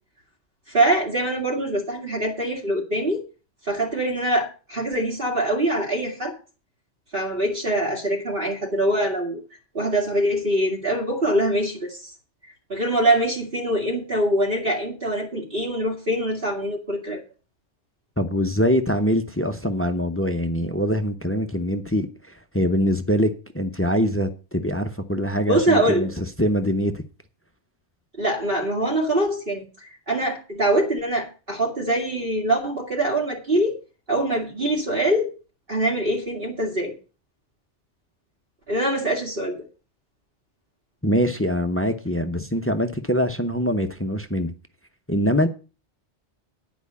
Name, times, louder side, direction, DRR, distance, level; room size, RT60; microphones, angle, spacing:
voice 1, 0.7-3.2 3.6-6.4 7.1-9.4 9.7-12.1 12.7-17.2 25.5-26.1 28.2-33.8 34.1-35.3 35.7-36.9 38.7-39.6, right 1 dB, 50° right, 2.3 m, -23 dB
voice 2, 18.2-22.1 22.5-27.0 41.0-44.5 45.1-45.5, equal, 15° left, 0.7 m, -23 dB
10.5 x 5.1 x 8.4 m
omnidirectional pair, 1.2 m